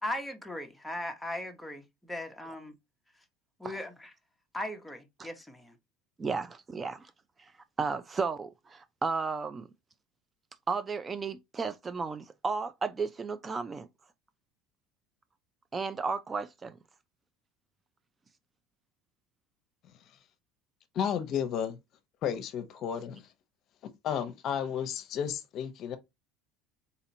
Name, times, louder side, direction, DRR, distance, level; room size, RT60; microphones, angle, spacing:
voice 1, 0.0-2.7 3.6-4.1 4.5-5.8, left 1 dB, 5° left, 0.8 m, -38 dB
voice 2, 6.2-7.1 7.4-7.5 7.8-9.7 10.7-13.9 15.7-16.8, right 4 dB, 25° right, 0.3 m, -33 dB
voice 3, 20.9-21.8 22.2-23.2 24.0-26.0, left 8 dB, 55° left, 0.7 m, -32 dB
4.0 x 2.8 x 2.6 m
supercardioid pair, 100°, 0 cm